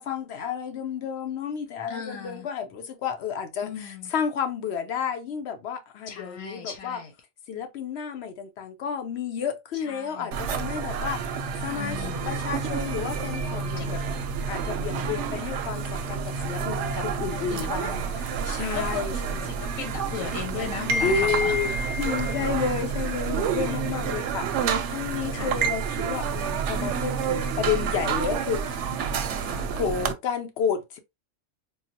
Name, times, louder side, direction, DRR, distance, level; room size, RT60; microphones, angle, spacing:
voice 1, 0.0-7.0 7.5-14.0 14.5-19.5 21.0-28.9 29.7-31.0, left 7 dB, 60° left, 0.8 m, -31 dB
voice 2, 1.9-2.4 3.6-4.1 6.1-7.1 9.8-10.3 11.7-12.2 13.8-14.2 16.9-17.0 17.3-18.2 18.7-21.6 23.5-24.0 25.3-25.5 27.4-27.5 29.3-29.7, left 7 dB, 90° left, 1.1 m, -37 dB
sound 1, 10.3-30.1, right 5 dB, 65° right, 0.8 m, -29 dB
3.8 x 2.1 x 2.6 m
omnidirectional pair, 1.4 m